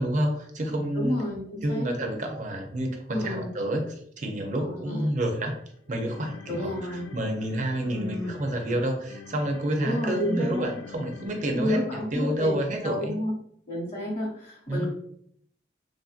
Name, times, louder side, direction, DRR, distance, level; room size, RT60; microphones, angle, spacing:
voice 1, 0.0-1.2 1.6-5.5 5.9-13.2 14.7-14.9, right 1 dB, 40° right, 3 dB, 0.5 m, -29 dB
voice 2, 0.9-1.9 3.1-3.5 4.5-5.1 6.5-7.0 7.9-8.3 9.8-10.7 11.5-13.3 13.7-14.9, left 1 dB, 35° left, -5 dB, 0.9 m, -30 dB
sound 1, 5.5-12.0, left 5 dB, 80° left, 0.3 m, -46 dB
3.2 x 2.5 x 2.4 m, 0.67 s
head